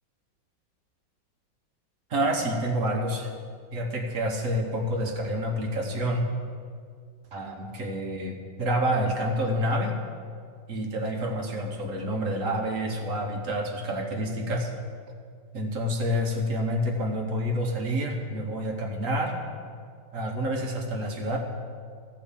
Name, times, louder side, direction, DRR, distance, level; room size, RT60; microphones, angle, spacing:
voice 1, 2.1-3.3 3.7-6.3 7.3-9.9 10.7-14.7 15.5-19.3 20.1-21.4, equal, 50° right, 2 dB, 1.5 m, -28 dB
14.0 x 5.5 x 7.2 m, 2.1 s
omnidirectional pair, 2.0 m